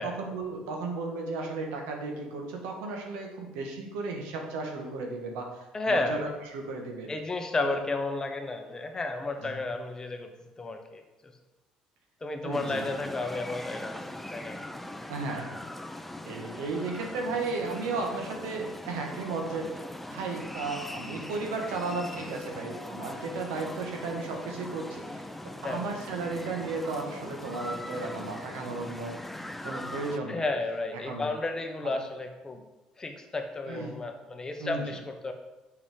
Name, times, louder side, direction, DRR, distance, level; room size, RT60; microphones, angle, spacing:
voice 1, 0.0-7.1 7.6-7.8 9.3-9.5 12.4-12.9 15.1-15.5 16.2-19.8 20.1-25.3 25.6-29.2 29.6-30.5 30.9-31.3 31.8-31.9 33.7-33.9 34.6-35.0, right 3 dB, 85° right, 2 dB, 1.6 m, -34 dB
voice 2, 5.7-6.2 7.1-10.3 10.6-11.3 12.2-14.0 14.3-14.6 25.6-25.8 30.3-32.6 33.0-35.3, left 2 dB, 25° left, 5 dB, 1.2 m, -32 dB
sound 1, 12.5-30.2, left 1 dB, 5° left, 0.6 m, -41 dB
6.9 x 5.8 x 5.1 m, 1.1 s
supercardioid pair, 80°, 3 cm